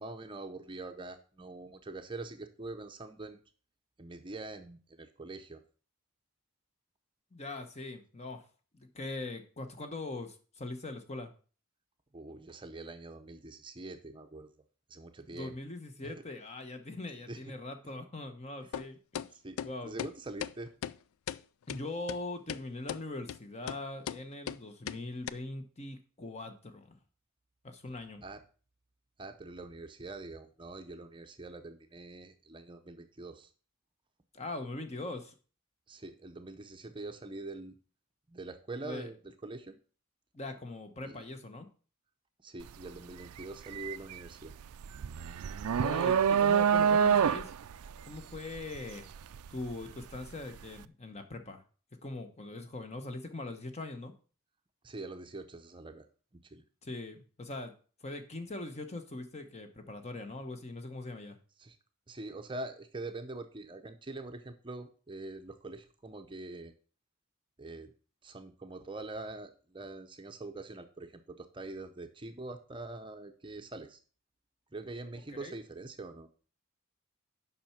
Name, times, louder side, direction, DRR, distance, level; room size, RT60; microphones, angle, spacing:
voice 1, 0.0-3.4 4.0-5.6 12.1-14.5 14.9-15.6 16.0-16.1 17.3-17.5 18.6-18.7 19.4-19.6 19.8-20.7 28.2-28.4 29.2-33.5 35.9-37.8 38.3-39.8 41.0-41.2 42.4-44.5 54.8-56.1 56.3-56.6 61.6-61.8 62.1-66.7 67.6-67.9 68.2-74.0 74.7-76.3, right 2 dB, 20° right, 6 dB, 0.6 m, -44 dB
voice 2, 7.3-8.4 8.7-11.3 15.3-19.2 19.6-19.9 21.7-27.0 27.6-28.2 34.3-35.3 38.8-39.1 40.3-41.7 45.8-47.5 48.1-49.1 49.5-51.6 52.0-54.1 56.8-57.7 58.0-61.4 75.3-75.5, left 2 dB, 30° left, 7 dB, 1.0 m, -41 dB
sound 1, 18.7-18.9 19.2-19.3 19.6-19.7 20.0-20.1 20.4-20.5 20.8-21.0 21.3-21.4 21.7-21.8 22.1-22.2 22.5-22.6 22.9-23.0 23.3-23.4 23.7-23.8 24.1-24.2 24.5-24.6 24.9-25.0 25.3-25.4, left 9 dB, 70° left, 0.3 m, -37 dB
sound 2, 42.6-42.9 43.2-50.2, right 7 dB, 90° right, 0.4 m, -27 dB
7.5 x 5.6 x 5.7 m, 0.39 s
head